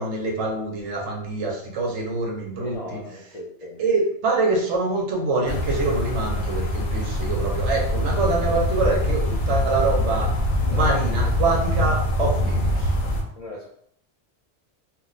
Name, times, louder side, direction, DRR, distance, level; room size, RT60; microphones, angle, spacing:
voice 1, 0.0-3.0 3.8-10.4 10.7-12.9, right 3 dB, 85° right, 1 dB, 1.0 m, -25 dB
voice 2, 2.6-3.8 10.6-11.6 13.3-13.7, left 1 dB, 70° left, -2 dB, 0.3 m, -38 dB
sound 1, 5.5-13.2, left 1 dB, 90° left, 1.0 m, -24 dB
2.4 x 2.2 x 3.8 m, 0.67 s
omnidirectional pair, 1.2 m